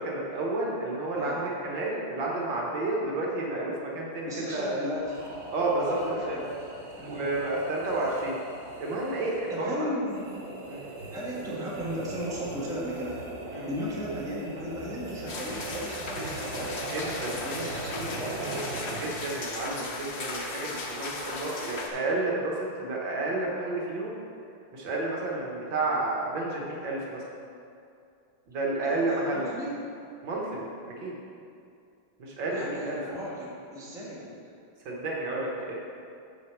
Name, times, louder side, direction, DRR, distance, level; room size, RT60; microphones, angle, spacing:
voice 1, 0.0-4.8 5.5-6.0 6.3-6.4 7.1-8.4 8.8-9.9 10.7-10.8 13.5-13.7 16.9-17.4 19.0-24.2 24.7-27.2 28.5-29.5 30.2-30.7 31.0-31.2 32.2-33.0 34.9-35.7, right 2 dB, 70° right, -3 dB, 1.9 m, -31 dB
voice 2, 1.1-1.5 4.3-5.2 5.8-6.6 6.9-7.3 7.9-8.1 9.5-10.3 11.1-13.2 13.5-18.6 28.8-29.7 32.5-34.4, equal, ahead, -7 dB, 1.3 m, -35 dB
sound 1, 4.9-19.5, right 2 dB, 40° right, 0.8 m, -40 dB
sound 2, 15.3-21.9, left 2 dB, 50° left, 0.8 m, -37 dB
6.4 x 5.2 x 7.0 m, 2.5 s
omnidirectional pair, 2.2 m